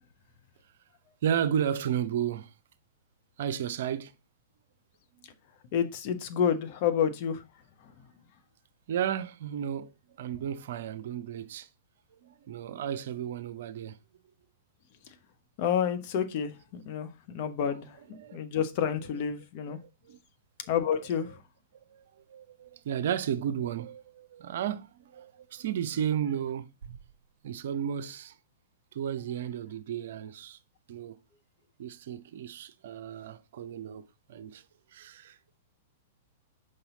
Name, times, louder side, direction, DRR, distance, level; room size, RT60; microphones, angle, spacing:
voice 1, 1.2-2.5 3.4-4.1 8.9-9.9 10.2-11.7 12.2-14.0 17.7-17.8 18.2-18.4 19.7-20.2 21.3-21.4 21.9-27.0 27.4-28.4 28.9-30.6 30.9-31.2 31.8-34.6 34.9-35.4, right 9 dB, 60° right, 0.6 m, -33 dB
voice 2, 5.7-7.4 15.6-19.8 20.7-21.3, left 8 dB, 45° left, 1.0 m, -29 dB
5.6 x 5.3 x 3.9 m
figure-of-eight pair, 105°, 0 cm